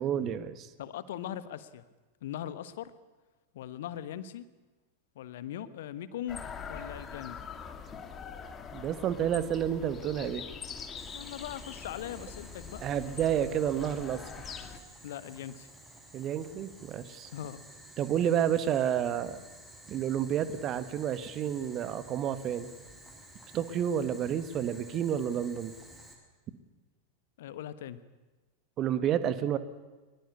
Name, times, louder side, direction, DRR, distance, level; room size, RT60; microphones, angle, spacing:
voice 1, 0.0-0.7 8.7-10.4 12.8-14.2 16.1-17.3 18.0-19.4 19.9-22.7 23.5-25.7 28.8-29.6, right 9 dB, 30° right, 12 dB, 1.7 m, -30 dB
voice 2, 0.8-1.8 2.2-2.9 3.5-4.4 5.1-6.4 6.7-7.4 11.1-12.8 15.0-15.7 17.3-17.6 18.2-18.3 27.4-28.0, left 11 dB, 55° left, 14 dB, 1.3 m, -40 dB
sound 1, 6.3-14.8, left 6 dB, 20° left, 2.5 m, -43 dB
Boiling, 11.0-26.1, right 1 dB, 10° right, 7.8 m, -52 dB
23.0 x 22.0 x 8.5 m, 1.3 s
figure-of-eight pair, 90°, 0 cm